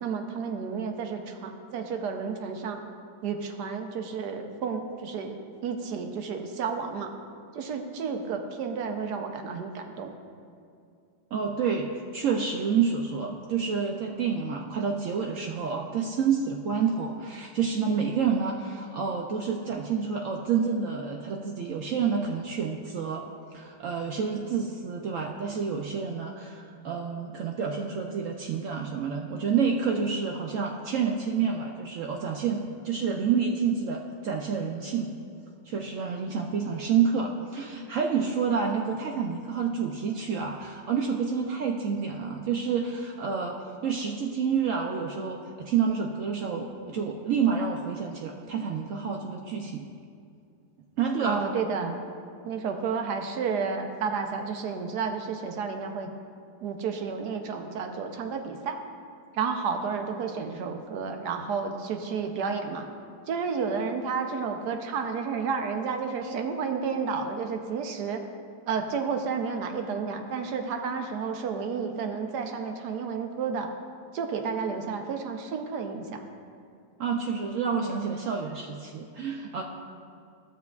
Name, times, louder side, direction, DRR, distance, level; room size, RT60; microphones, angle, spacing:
voice 1, 0.0-2.8 3.2-7.1 7.5-10.1 51.2-52.1 52.4-56.1 56.6-58.8 59.3-62.9 63.3-68.2 68.7-73.7 74.1-76.2, right 5 dB, 70° right, 5 dB, 1.2 m, -31 dB
voice 2, 11.3-23.2 23.5-35.1 35.7-43.6 43.8-49.9 51.0-51.4 77.0-79.6, right 6 dB, 90° right, 1 dB, 0.6 m, -28 dB
15.0 x 6.9 x 2.4 m, 2.4 s
omnidirectional pair, 2.0 m